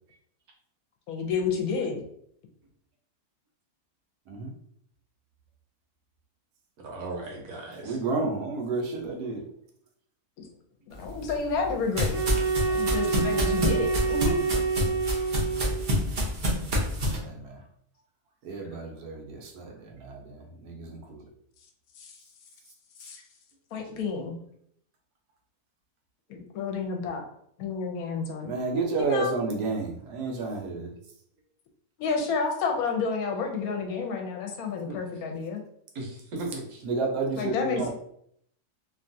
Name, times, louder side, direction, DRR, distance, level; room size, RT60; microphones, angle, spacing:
voice 1, 1.1-2.0 10.4-10.5 10.9-12.2 12.7-14.4 22.0-22.1 23.0-23.2 23.7-24.3 26.3-27.2 27.6-29.3 32.0-35.6 37.3-37.9, left 4 dB, 75° left, 3 dB, 1.0 m, -30 dB
voice 2, 6.8-8.0 34.9-35.0 35.9-36.8 37.4-37.5, right 2 dB, 70° right, 0 dB, 1.2 m, -37 dB
voice 3, 7.8-9.4 17.2-17.6 18.4-21.2 28.4-30.9 36.8-37.9, right 3 dB, 90° right, 1 dB, 1.2 m, -31 dB
sound 1, 11.0-17.2, equal, 55° right, 0.5 m, -28 dB
sound 2, 12.1-16.0, right 4 dB, 10° right, 0.6 m, -27 dB
2.9 x 2.3 x 2.6 m, 0.69 s
omnidirectional pair, 1.7 m